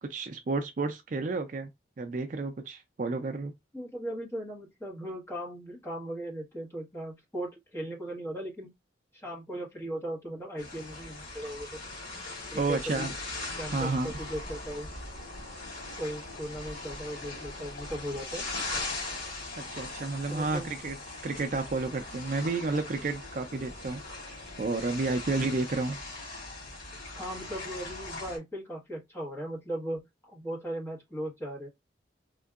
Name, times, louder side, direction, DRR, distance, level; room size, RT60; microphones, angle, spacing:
voice 1, 0.0-1.7 2.0-3.5 12.5-13.1 13.7-14.1 19.6-21.0 21.2-24.0 24.6-26.0, right 3 dB, 45° right, 0.4 m, -31 dB
voice 2, 3.7-8.7 9.1-11.7 12.5-13.1 13.6-14.9 15.9-18.5 20.3-20.7 27.1-31.7, right 1 dB, 15° left, 1.2 m, -38 dB
sound 1, 10.6-28.4, left 2 dB, 80° left, 2.2 m, -40 dB
3.7 x 2.6 x 2.3 m
head